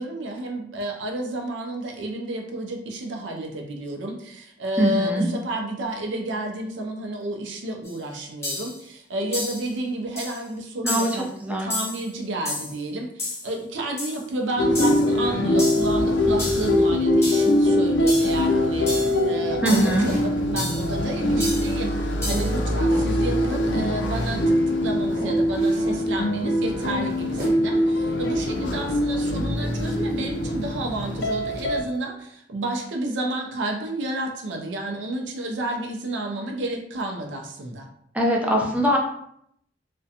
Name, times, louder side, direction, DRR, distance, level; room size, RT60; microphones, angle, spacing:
voice 1, 0.0-11.3 11.6-37.9, right 1 dB, 90° right, 2 dB, 0.4 m, -31 dB
voice 2, 4.8-5.3 10.8-11.7 19.6-20.1 38.1-39.0, right 1 dB, 10° right, -1 dB, 0.4 m, -22 dB
sound 1, 7.8-7.9 8.4-8.8 9.3-9.7 10.2-10.4 10.9-11.2 11.7-12.0 12.5-12.8 13.2-13.5 14.0-14.2 14.8-15.1 15.6-15.9 16.4-16.7 17.2-17.5 18.1-18.4 18.9-19.2 19.7-20.0 20.6-20.9 21.4-21.7 22.2-22.6, left 1 dB, 15° left, 0.8 m, -31 dB
sound 2, 14.6-31.8, left 1 dB, 70° left, 0.4 m, -23 dB
sound 3, 19.6-20.3 20.8-22.6 22.9-23.2 23.7-24.4 24.7-24.8 25.1-26.0 26.7-27.6, equal, 55° right, 0.7 m, -35 dB
2.4 x 2.2 x 2.7 m, 0.72 s
head